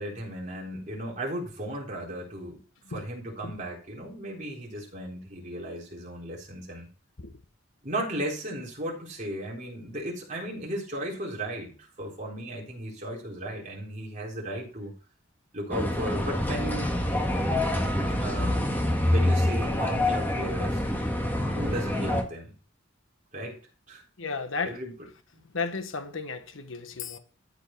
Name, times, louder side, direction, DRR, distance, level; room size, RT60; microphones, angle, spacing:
voice 1, 0.0-2.6 2.9-6.9 7.8-14.9 15.5-16.9 18.2-18.7 19.1-20.8 21.5-22.5 23.3-23.6 23.9-24.0 24.6-24.9 25.3-25.5, right 1 dB, 40° right, 4.0 m, -35 dB
sound 1, 15.7-22.2, left 1 dB, 10° left, 1.6 m, -26 dB
voice 2, 24.2-24.8 25.5-27.2, left 4 dB, 80° left, 1.2 m, -33 dB
13.0 x 5.2 x 4.6 m
head